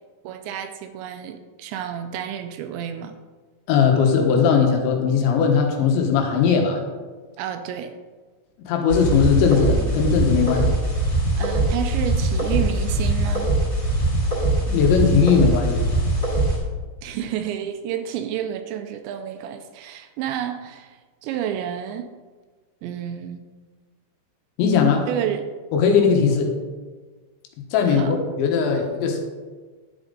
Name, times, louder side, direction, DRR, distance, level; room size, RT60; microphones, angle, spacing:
voice 1, 0.2-3.2 7.4-7.9 11.4-13.5 17.0-22.1 22.8-23.5 25.1-25.5 27.8-28.1, right 9 dB, 85° right, 8 dB, 2.8 m, -30 dB
voice 2, 3.7-6.8 8.7-10.7 14.7-15.8 24.6-25.1 25.7-26.5 27.7-29.2, left 6 dB, 80° left, 2 dB, 3.5 m, -19 dB
sound 1, 8.9-16.6, right 2 dB, 10° left, 2.0 m, -22 dB
11.5 x 9.1 x 4.0 m, 1.4 s
omnidirectional pair, 5.3 m